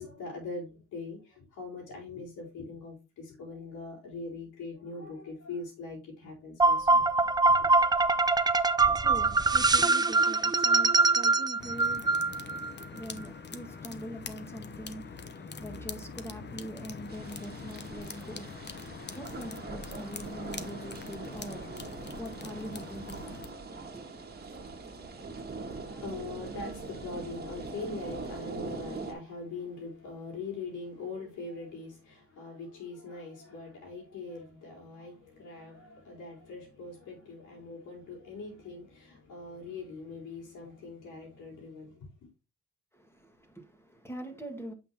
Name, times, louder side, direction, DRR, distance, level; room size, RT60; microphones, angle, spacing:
voice 1, 0.0-7.1 7.5-7.7 25.6-42.1, left 3 dB, 80° left, 4.1 m, -42 dB
sound 1, 6.6-12.7, right 3 dB, 15° right, 0.5 m, -24 dB
voice 2, 8.8-12.1 12.9-18.5 19.2-21.7 22.1-23.4 23.9-24.0 42.9-44.7, equal, 10° left, 1.9 m, -43 dB
sound 2, 11.6-23.5, left 5 dB, 35° left, 0.9 m, -43 dB
sound 3, 17.1-29.1, right 3 dB, 35° right, 1.7 m, -42 dB
8.2 x 5.8 x 2.9 m
cardioid pair, 90°, 30 cm